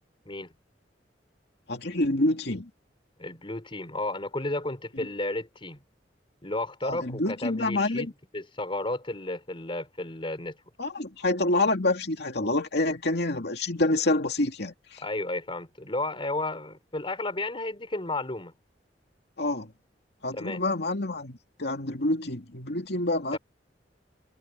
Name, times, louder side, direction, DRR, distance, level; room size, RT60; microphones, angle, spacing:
voice 1, 1.7-2.7 5.0-5.1 6.8-8.1 10.8-15.0 19.4-19.7 20.2-23.4, left 2 dB, 65° left, 2.5 m, -27 dB
voice 2, 3.2-5.8 6.4-8.1 8.3-10.6 15.0-18.5 20.3-20.6 23.3-23.4, left 2 dB, 30° left, 3.7 m, -33 dB
head